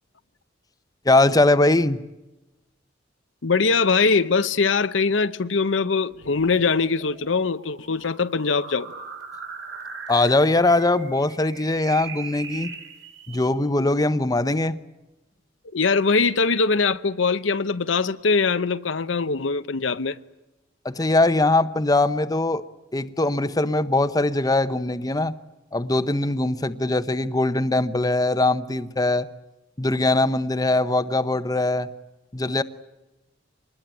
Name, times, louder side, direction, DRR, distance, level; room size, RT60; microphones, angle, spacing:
voice 1, 1.1-2.0 10.1-12.7 13.3-14.8 20.8-22.6 22.9-25.3 25.7-29.3 29.8-31.9 32.3-32.6, left 2 dB, 20° left, 0.8 m, -21 dB
voice 2, 3.4-8.9 15.7-20.2, left 4 dB, 80° left, 0.8 m, -22 dB
sound 1, 6.1-13.5, right 5 dB, 70° right, 5.0 m, -40 dB
25.5 x 20.5 x 9.0 m
head